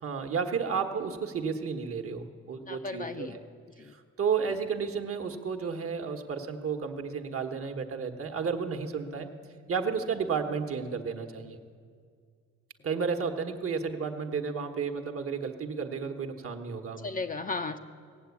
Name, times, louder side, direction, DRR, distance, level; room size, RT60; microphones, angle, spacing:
voice 1, 0.0-3.4 4.2-9.3 9.7-11.6 12.8-17.1, right 6 dB, 50° right, 6 dB, 1.2 m, -32 dB
voice 2, 2.6-3.4 3.8-3.9 17.0-17.8, left 3 dB, 30° left, 7 dB, 0.6 m, -35 dB
17.0 x 7.6 x 8.3 m, 2.1 s
cardioid pair, 90°, 30 cm